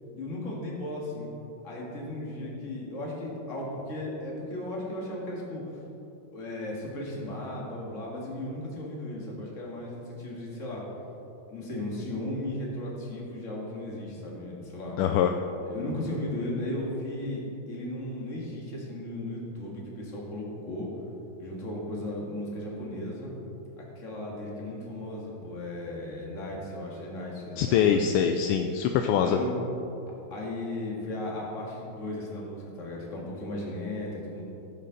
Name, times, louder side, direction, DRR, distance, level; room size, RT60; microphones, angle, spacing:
voice 1, 0.1-1.3 1.6-5.6 6.3-10.8 11.5-15.0 15.6-20.9 21.4-23.3 23.8-28.1 29.2-29.6 30.1-34.4, left 1 dB, 35° left, -3 dB, 2.2 m, -36 dB
voice 2, 15.0-15.3 27.6-29.4, left 8 dB, 80° left, 5 dB, 1.5 m, -23 dB
15.5 x 7.5 x 4.0 m, 2.9 s
omnidirectional pair, 2.4 m